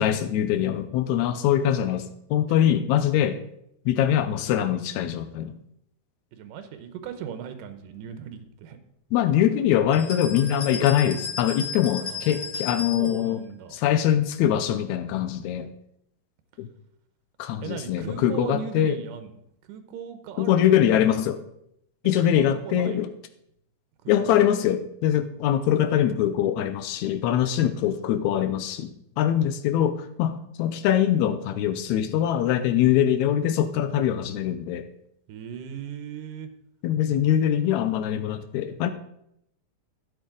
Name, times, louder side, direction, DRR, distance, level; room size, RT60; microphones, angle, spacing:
voice 1, 0.0-3.4 3.9-5.5 9.1-13.4 13.7-15.7 16.6-16.7 17.4-19.0 20.4-21.4 22.0-23.1 24.1-34.9 36.8-38.9, left 10 dB, 80° left, 10 dB, 1.7 m, -23 dB
voice 2, 6.3-8.8 12.0-12.5 12.8-13.8 17.6-19.3 19.7-21.0 22.0-23.0 24.0-24.5 35.3-36.5, right 8 dB, 75° right, 8 dB, 2.4 m, -38 dB
sound 1, 9.9-13.3, left 4 dB, 45° left, 1.6 m, -35 dB
12.0 x 8.9 x 3.8 m, 0.75 s
omnidirectional pair, 4.0 m